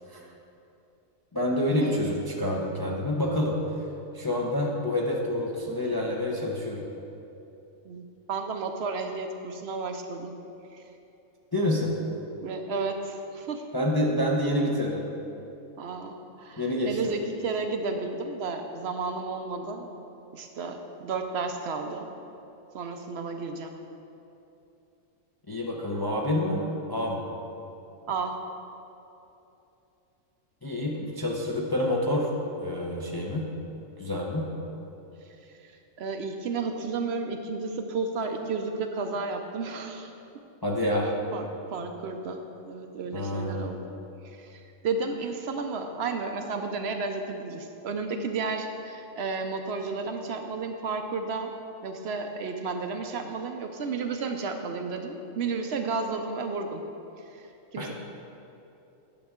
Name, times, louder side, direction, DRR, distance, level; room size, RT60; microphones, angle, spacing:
voice 1, 1.3-3.8 4.1-6.9 11.5-11.9 13.7-15.0 16.6-17.0 25.5-27.3 30.6-32.3 32.6-33.5 34.0-34.5 40.6-41.1 43.1-43.7 57.8-57.9, left 1 dB, 25° left, -2 dB, 0.5 m, -27 dB
voice 2, 7.8-10.3 10.7-10.8 12.4-13.6 15.8-19.9 20.3-22.1 22.7-23.7 28.1-28.4 35.4-40.1 41.3-42.4 42.7-43.9 44.2-51.5 51.8-56.8 57.2-57.9, right 4 dB, 65° right, 5 dB, 0.8 m, -32 dB
10.0 x 6.7 x 3.6 m, 2.9 s
omnidirectional pair, 1.3 m